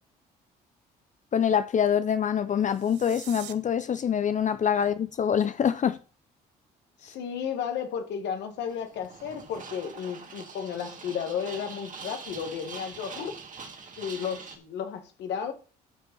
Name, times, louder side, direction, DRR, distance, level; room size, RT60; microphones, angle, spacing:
voice 1, 1.3-6.0, left 8 dB, 40° left, 0.6 m, -25 dB
sound 1, 2.6-3.5, right 12 dB, 70° right, 0.9 m, -44 dB
voice 2, 7.0-13.3 14.0-15.5, left 7 dB, 70° left, 1.9 m, -33 dB
sound 2, 8.6-14.6, right 5 dB, 45° right, 2.3 m, -44 dB
12.0 x 4.9 x 5.4 m
supercardioid pair, 65°, 19 cm